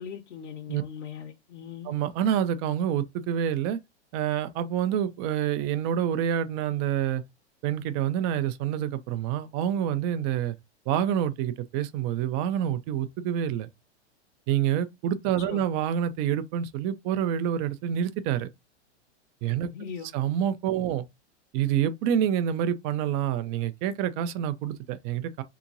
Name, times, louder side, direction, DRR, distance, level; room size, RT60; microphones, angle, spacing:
voice 1, 0.0-1.9 15.5-15.6 19.7-20.1, left 7 dB, 85° left, 1.0 m, -39 dB
voice 2, 1.8-3.8 4.1-7.2 7.6-10.5 10.9-13.7 14.5-18.5 19.4-19.7 20.1-21.0 21.5-25.4, right 10 dB, 30° right, 0.4 m, -27 dB
3.5 x 2.9 x 2.5 m
hypercardioid pair, 135°, 35 cm